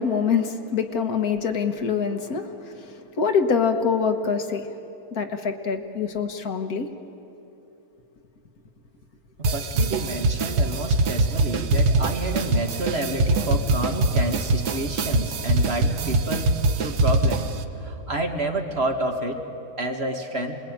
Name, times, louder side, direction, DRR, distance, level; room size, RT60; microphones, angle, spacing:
voice 1, 0.0-4.7 5.1-6.9, left 6 dB, 70° left, 6 dB, 1.7 m, -25 dB
voice 2, 9.4-17.5 17.8-19.5 19.8-20.6, right 1 dB, 40° right, 3 dB, 2.1 m, -29 dB
sound 1, 9.4-17.6, right 2 dB, 85° right, 1.6 m, -23 dB
27.0 x 21.0 x 8.9 m, 3.0 s
omnidirectional pair, 1.6 m